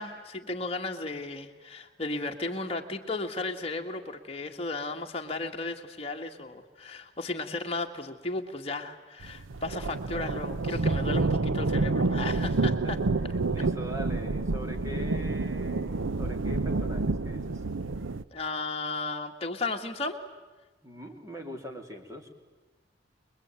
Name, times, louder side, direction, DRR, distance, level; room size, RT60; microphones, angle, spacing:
voice 1, 0.0-13.0 18.3-20.2, left 3 dB, 30° left, 3 dB, 1.9 m, -35 dB
sound 1, 9.2-18.2, right 3 dB, 90° right, 0.7 m, -28 dB
voice 2, 12.3-12.9 13.3-17.6 20.8-22.3, equal, 15° right, 3 dB, 2.9 m, -42 dB
25.0 x 22.5 x 9.1 m, 1.2 s
head